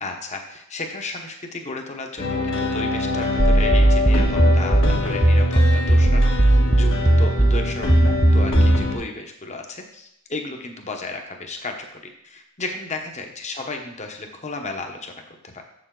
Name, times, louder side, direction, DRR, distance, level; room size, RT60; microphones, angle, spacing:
voice 1, 0.0-15.6, left 3 dB, 30° left, 3 dB, 1.0 m, -34 dB
sound 1, 2.2-9.0, left 2 dB, 60° left, 1.5 m, -25 dB
sound 2, 3.4-8.9, right 1 dB, 10° right, 0.4 m, -17 dB
7.5 x 7.0 x 3.8 m, 0.76 s
head